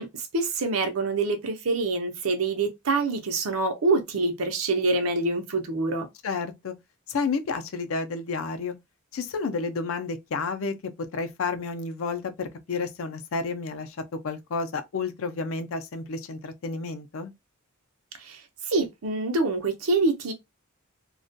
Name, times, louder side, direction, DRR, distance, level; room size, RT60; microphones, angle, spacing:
voice 1, 0.0-6.1 18.2-18.4 18.7-20.3, right 3 dB, 80° right, 0.6 m, -26 dB
voice 2, 6.2-6.7 7.1-8.7 9.1-14.0 14.2-17.3, left 4 dB, 70° left, 0.5 m, -31 dB
2.3 x 2.1 x 2.6 m
head